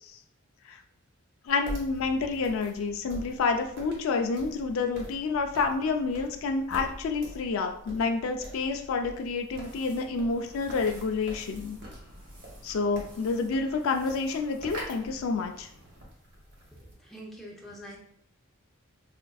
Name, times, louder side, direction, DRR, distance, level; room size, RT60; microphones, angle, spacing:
voice 1, 1.5-11.8 12.6-15.7, left 4 dB, 65° left, 4 dB, 0.3 m, -29 dB
sound 1, 1.5-16.9, equal, 50° right, 0.9 m, -46 dB
sound 2, 9.6-16.0, right 1 dB, 80° right, 1.3 m, -48 dB
voice 2, 16.8-18.0, equal, ahead, -3 dB, 0.5 m, -45 dB
4.2 x 2.5 x 2.3 m, 0.68 s
head